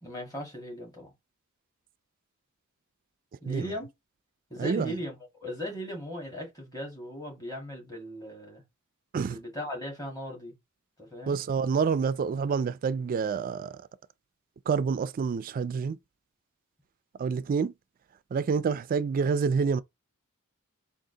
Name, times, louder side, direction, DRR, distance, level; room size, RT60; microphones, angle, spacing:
voice 1, 0.0-1.1 3.4-3.9 4.5-8.6 9.3-10.5 11.0-11.4, equal, 15° left, 1.7 m, -38 dB
voice 2, 4.6-5.0 9.1-9.4 11.3-13.8 14.7-16.0 17.2-17.7 18.3-19.8, right 5 dB, 40° right, 0.3 m, -28 dB
3.7 x 2.4 x 3.7 m
head